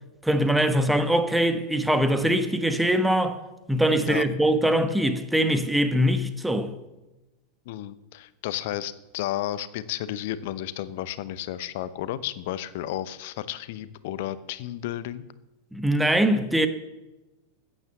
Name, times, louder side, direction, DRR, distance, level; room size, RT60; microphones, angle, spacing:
voice 1, 0.2-3.4 3.7-6.7 15.7-16.7, right 1 dB, 5° right, 1.3 m, -22 dB
voice 2, 7.7-15.2, left 13 dB, 50° left, 0.8 m, -32 dB
15.0 x 9.9 x 7.0 m
figure-of-eight pair, 90°, 0 cm